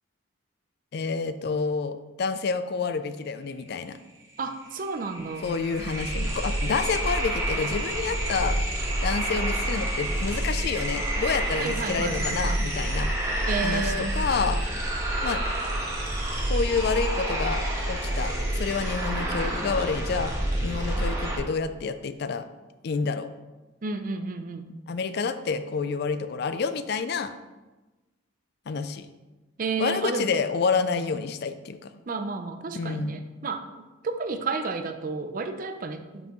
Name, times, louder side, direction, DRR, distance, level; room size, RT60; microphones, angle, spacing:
voice 1, 0.9-4.0 5.4-8.6 9.0-13.1 13.6-14.6 15.2-15.4 16.5-20.3 20.6-22.5 22.8-23.3 24.9-27.3 28.7-29.1 29.8-31.9 32.7-33.2, left 5 dB, 55° left, 11 dB, 0.4 m, -28 dB
sound 1, 4.4-4.5 4.7-21.4, right 1 dB, 15° right, 1.2 m, -28 dB
voice 2, 4.4-5.5 11.6-12.6 13.5-14.2 23.8-24.7 29.6-30.3 32.1-33.6 34.0-36.3, right 4 dB, 45° right, 8 dB, 0.5 m, -31 dB
7.1 x 5.4 x 3.0 m, 1.1 s
head